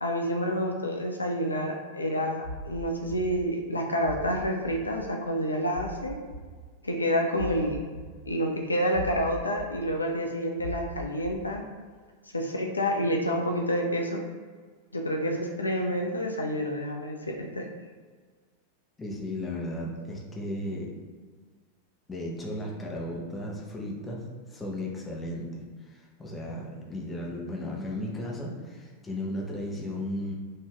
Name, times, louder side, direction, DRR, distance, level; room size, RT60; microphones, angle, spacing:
voice 1, 0.0-6.2 6.8-7.8 8.3-11.6 12.3-14.2 14.9-17.6, equal, 80° left, 1 dB, 0.3 m, -28 dB
sound 1, 2.4-2.7 3.1-3.2 4.0-4.3 4.7-4.8 5.7-5.9 6.3-6.4 7.4-7.6 7.9-8.0 8.9-9.2 9.6-9.7 10.6-10.8 11.2-11.4, left 1 dB, 85° right, 0.9 m, -38 dB
voice 2, 19.0-20.9 22.1-25.5 25.9-30.3, left 1 dB, 15° left, -2 dB, 0.6 m, -35 dB
4.7 x 2.6 x 2.2 m, 1.5 s
figure-of-eight pair, 90°, 0 cm